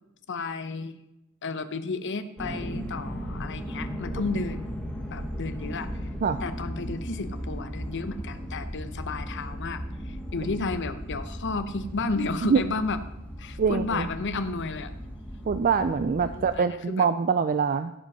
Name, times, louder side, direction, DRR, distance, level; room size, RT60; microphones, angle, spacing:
voice 1, 0.3-0.9 1.4-4.7 5.1-6.1 6.4-13.0 13.4-14.9 16.3-17.1, left 3 dB, 55° left, 11 dB, 0.8 m, -32 dB
sound 1, 2.4-16.5, equal, 5° left, 2.2 m, -36 dB
voice 2, 13.6-14.1 15.5-17.9, right 5 dB, 40° right, 11 dB, 0.4 m, -24 dB
15.5 x 5.2 x 5.4 m, 0.90 s
head